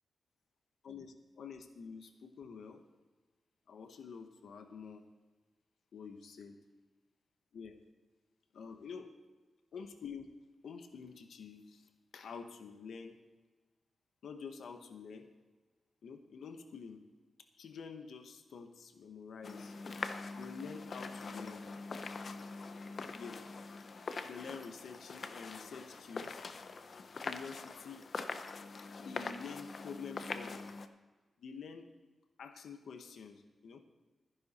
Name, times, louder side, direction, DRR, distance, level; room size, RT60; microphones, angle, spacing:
voice 1, 0.8-2.8 3.7-5.1 5.9-6.6 7.5-7.8 8.5-9.1 9.7-10.3 10.6-13.2 14.2-15.3 16.0-17.0 17.6-19.8 20.3-21.7 23.1-23.4 24.2-26.4 27.2-28.1 29.0-30.7 31.4-31.9 32.4-33.8, left 5 dB, 80° left, 7 dB, 1.0 m, -48 dB
sound 1, 19.4-30.9, left 4 dB, 50° left, 0.8 m, -43 dB
14.0 x 10.5 x 4.2 m, 1.3 s
wide cardioid pair, 110°, 0 cm